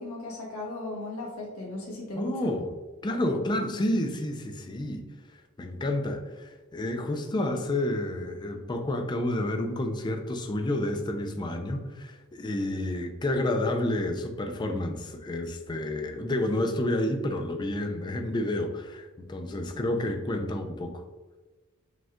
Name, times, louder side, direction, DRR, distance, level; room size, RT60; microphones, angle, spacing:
voice 1, 0.0-2.5, left 2 dB, 85° left, -4 dB, 1.1 m, -36 dB
voice 2, 2.2-2.7 3.0-5.0 5.6-21.0, left 1 dB, 20° left, 5 dB, 0.4 m, -30 dB
5.0 x 2.3 x 3.6 m, 1.3 s
head